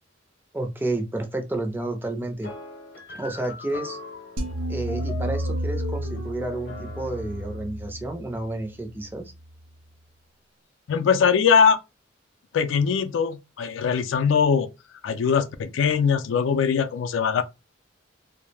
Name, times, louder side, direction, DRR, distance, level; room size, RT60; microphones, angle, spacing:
voice 1, 0.5-2.5 3.1-4.0 4.7-9.2, right 2 dB, 10° right, 0.4 m, -30 dB
sound 1, 2.4-7.6, left 4 dB, 50° left, 0.7 m, -40 dB
sound 2, 4.4-9.6, right 1 dB, 75° right, 0.5 m, -32 dB
voice 2, 10.9-11.8 12.5-14.7 15.0-17.4, left 6 dB, 80° left, 0.4 m, -21 dB
2.2 x 2.0 x 3.2 m
head